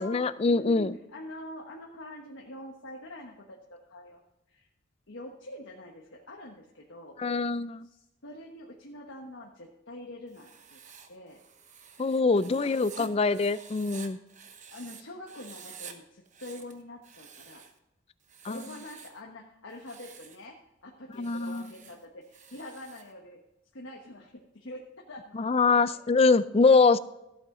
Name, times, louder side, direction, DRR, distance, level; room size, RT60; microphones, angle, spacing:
voice 1, 0.0-0.9 7.2-7.9 12.0-14.2 18.4-18.6 21.2-21.7 25.3-27.0, left 4 dB, 30° left, 16 dB, 0.4 m, -24 dB
voice 2, 0.5-4.2 4.5-4.7 5.1-7.2 7.8-10.8 11.1-11.4 12.5-13.1 14.7-17.6 18.4-23.4 23.7-24.8 25.1-25.4 25.7-26.0, left 1 dB, 90° left, 0 dB, 1.2 m, -45 dB
Writing, 10.3-15.0 15.3-15.9 16.3-17.8 18.2-19.2 19.7-20.4 21.1-23.1, right 7 dB, 40° right, 1.0 m, -50 dB
14.0 x 8.4 x 3.8 m, 0.90 s
head